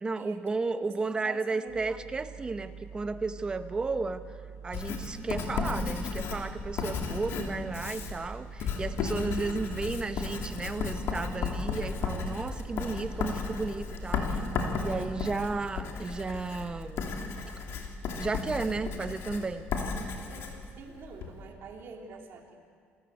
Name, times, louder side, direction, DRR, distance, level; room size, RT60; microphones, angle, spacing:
voice 1, 0.0-4.2 4.6-14.4 14.8-17.1 18.2-19.7, right 3 dB, 20° right, 10 dB, 0.9 m, -33 dB
voice 2, 1.2-1.8 20.1-22.6, right 5 dB, 55° right, 1 dB, 3.2 m, -47 dB
sound 1, 1.7-15.2, right 7 dB, 75° right, 5.4 m, -46 dB
Writing, 4.7-21.4, left 5 dB, 65° left, 2.9 m, -34 dB
28.0 x 14.0 x 8.2 m, 2.2 s
cardioid pair, 145°, 5 cm